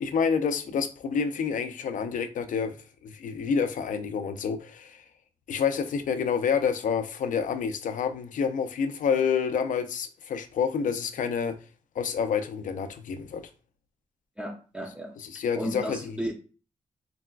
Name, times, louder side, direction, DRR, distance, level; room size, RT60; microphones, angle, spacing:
voice 1, 0.0-2.8 3.0-5.0 5.5-11.6 12.0-13.4 15.2-16.2, left 6 dB, 80° left, 0.4 m, -28 dB
voice 2, 14.4-15.1 15.6-16.3, equal, 10° right, 0.6 m, -34 dB
4.0 x 2.1 x 2.3 m
cardioid pair, 85°, 13 cm